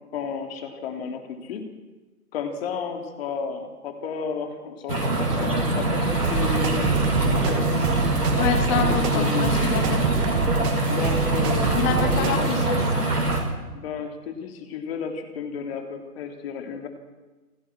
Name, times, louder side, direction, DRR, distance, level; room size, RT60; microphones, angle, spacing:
voice 1, 0.1-1.7 2.3-7.9 8.9-9.5 10.9-12.5 13.7-16.9, left 6 dB, 40° left, 5 dB, 3.6 m, -33 dB
sound 1, 4.9-13.4, right 2 dB, 80° right, 7.9 m, -23 dB
sound 2, 6.2-12.6, right 6 dB, 25° right, 2.5 m, -29 dB
voice 2, 8.4-10.0 11.7-13.0, left 7 dB, 25° left, 6 dB, 2.7 m, -27 dB
29.0 x 19.5 x 6.3 m, 1.2 s
figure-of-eight pair, 135°, 47 cm